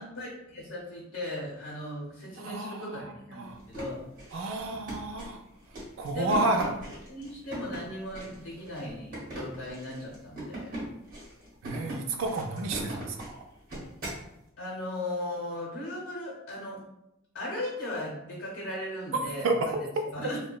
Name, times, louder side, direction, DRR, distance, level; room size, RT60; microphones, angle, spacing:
voice 1, 0.0-4.0 6.1-6.7 7.1-10.8 14.6-16.8 17.3-20.4, left 1 dB, 65° left, -4 dB, 0.8 m, -37 dB
voice 2, 2.4-3.6 4.3-5.4 6.0-6.7 11.6-13.4 19.4-19.5, right 2 dB, 65° right, 4 dB, 0.3 m, -31 dB
sound 1, 3.5-14.3, right 1 dB, 45° right, 1.0 m, -41 dB
2.8 x 2.2 x 2.2 m, 0.84 s
head